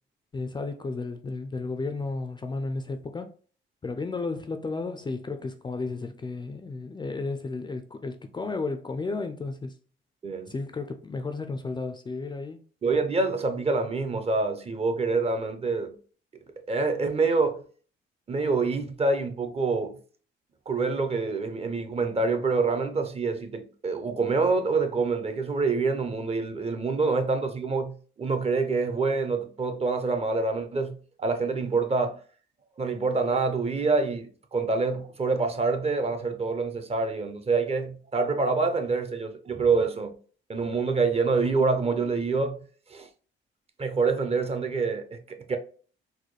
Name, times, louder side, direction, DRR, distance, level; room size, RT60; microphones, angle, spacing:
voice 1, 0.3-3.3 3.8-9.7 10.5-12.6, left 3 dB, 20° left, 0.4 m, -33 dB
voice 2, 10.2-10.5 12.8-16.0 16.6-17.6 18.3-20.0 20.7-32.2 32.8-40.2 40.5-42.6 42.9-43.1 43.8-45.6, right 4 dB, 30° right, 0.6 m, -26 dB
4.0 x 2.2 x 3.1 m
cardioid pair, 90°, 20 cm